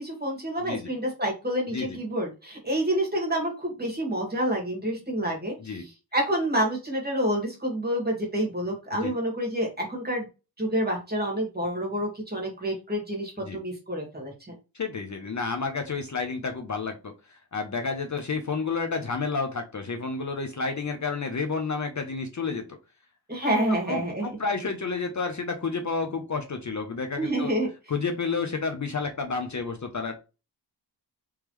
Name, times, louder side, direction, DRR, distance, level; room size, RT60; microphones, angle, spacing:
voice 1, 0.0-10.3 10.6-14.3 23.3-24.3 27.2-27.7, right 1 dB, 20° right, -1 dB, 1.7 m, -28 dB
voice 2, 14.7-22.8 23.4-27.5 27.9-30.1, left 4 dB, 45° left, 5 dB, 0.6 m, -30 dB
3.5 x 3.2 x 3.0 m, 0.30 s
wide cardioid pair, 95°, 42 cm